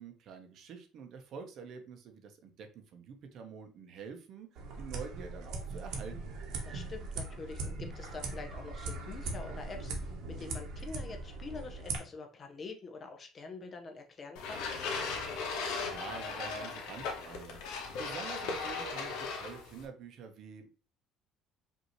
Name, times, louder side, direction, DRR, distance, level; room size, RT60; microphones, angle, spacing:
voice 1, 0.0-6.3 15.4-17.6 17.9-20.7, right 6 dB, 50° right, 6 dB, 0.8 m, -47 dB
sound 1, 4.6-12.0, right 3 dB, 65° right, 1.1 m, -40 dB
voice 2, 6.6-14.6, left 4 dB, 30° left, 5 dB, 0.7 m, -46 dB
sound 2, 14.4-19.9, left 4 dB, 80° left, 1.0 m, -37 dB
5.3 x 2.7 x 3.0 m, 0.36 s
cardioid pair, 145°, 0 cm